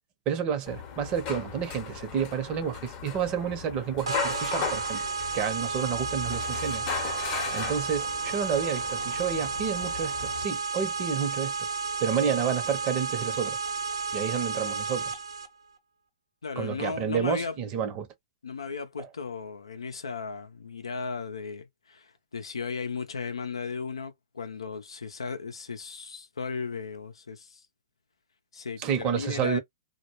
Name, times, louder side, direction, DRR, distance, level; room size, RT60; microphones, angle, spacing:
voice 1, 0.3-5.0 5.3-11.5 12.0-13.6 14.1-15.2 16.6-18.1 28.8-29.6, right 7 dB, 35° right, 0.8 m, -30 dB
sound 1, 0.7-10.4, left 7 dB, 40° left, 0.8 m, -37 dB
sound 2, 4.1-15.5, right 4 dB, 85° right, 0.7 m, -32 dB
voice 2, 16.4-17.6 18.4-27.6 28.5-29.6, left 5 dB, 85° left, 0.5 m, -36 dB
2.3 x 2.1 x 3.0 m
hypercardioid pair, 120°, 3 cm